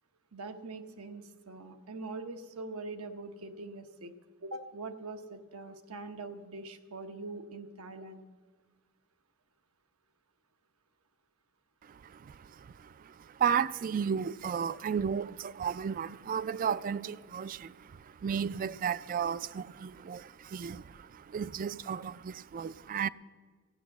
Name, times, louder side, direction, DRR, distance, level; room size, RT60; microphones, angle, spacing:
voice 1, 0.3-4.1 4.4-8.2, right 3 dB, 85° right, 1.0 m, -43 dB
voice 2, 11.9-23.1, right 7 dB, 40° right, 0.3 m, -34 dB
14.0 x 9.4 x 7.0 m
head